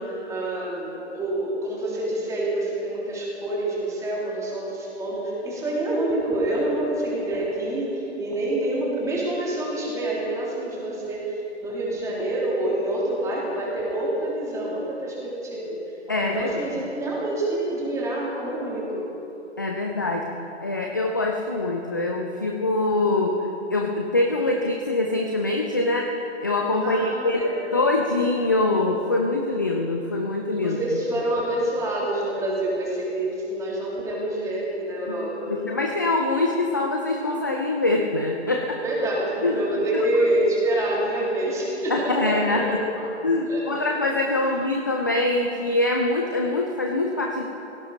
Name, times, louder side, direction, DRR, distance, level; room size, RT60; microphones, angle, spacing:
voice 1, 0.0-15.8 16.3-19.1 26.8-27.7 30.6-35.6 38.8-43.0 43.5-43.9 44.4-44.5, right 1 dB, 10° right, -5 dB, 2.9 m, -27 dB
voice 2, 16.1-16.5 19.6-20.4 20.6-23.4 23.7-30.8 35.1-38.8 39.4-39.6 39.9-40.0 41.9-42.8 43.2-47.4, left 2 dB, 20° left, 2 dB, 0.4 m, -24 dB
17.0 x 16.5 x 4.0 m, 3.0 s
figure-of-eight pair, 140°, 36 cm